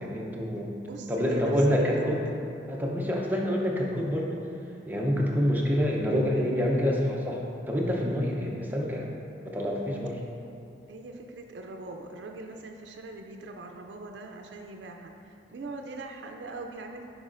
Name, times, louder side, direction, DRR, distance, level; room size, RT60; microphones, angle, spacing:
voice 1, 0.0-0.7 1.1-2.2 2.7-4.4 4.9-9.1 9.5-10.2, equal, 10° right, -2 dB, 0.6 m, -27 dB
voice 2, 0.8-1.5 2.0-2.1 10.9-17.0, right 2 dB, 70° right, 3 dB, 0.4 m, -41 dB
9.4 x 4.8 x 2.5 m, 2.7 s
head